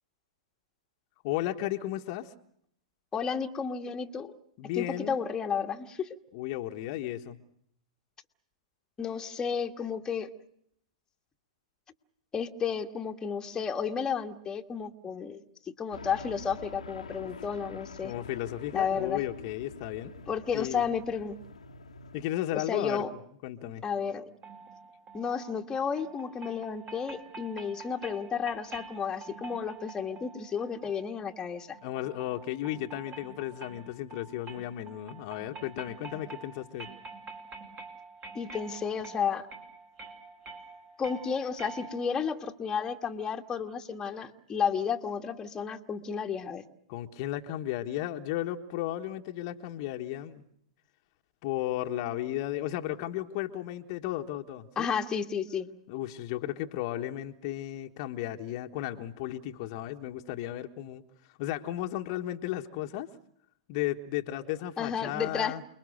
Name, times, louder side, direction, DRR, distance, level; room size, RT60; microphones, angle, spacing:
voice 1, 1.2-2.3 4.6-5.2 6.3-7.4 18.0-20.1 20.5-20.8 22.1-23.0 23.4-23.8 31.8-36.9 46.9-50.4 51.4-54.9 55.9-61.0 61.4-63.1 63.7-65.6, left 13 dB, 50° left, 4 dB, 1.3 m, -34 dB
voice 2, 3.1-4.3 4.7-6.2 9.0-10.3 12.3-18.1 18.7-19.2 20.3-21.4 22.7-23.1 23.8-24.3 25.1-31.8 38.3-39.5 41.0-46.6 54.7-55.7 64.8-65.5, left 6 dB, 20° left, 3 dB, 1.7 m, -32 dB
sound 1, 15.9-22.2, left 5 dB, 90° left, 1.4 m, -46 dB
sound 2, 24.4-42.3, right 4 dB, 35° right, 4.5 m, -47 dB
29.0 x 21.0 x 6.5 m, 0.71 s
hypercardioid pair, 115°, 4 cm